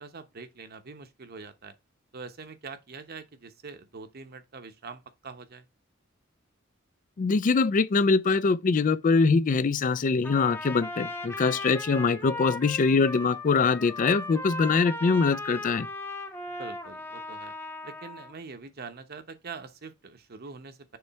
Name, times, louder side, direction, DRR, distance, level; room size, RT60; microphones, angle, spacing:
voice 1, 0.0-1.7 2.1-5.7 16.6-17.5 17.8-21.0, right 4 dB, 50° right, 0.9 m, -44 dB
voice 2, 7.2-15.9, left 4 dB, 40° left, 0.4 m, -23 dB
Trumpet, 10.2-18.3, left 2 dB, 10° left, 0.8 m, -37 dB
7.0 x 3.3 x 4.5 m
head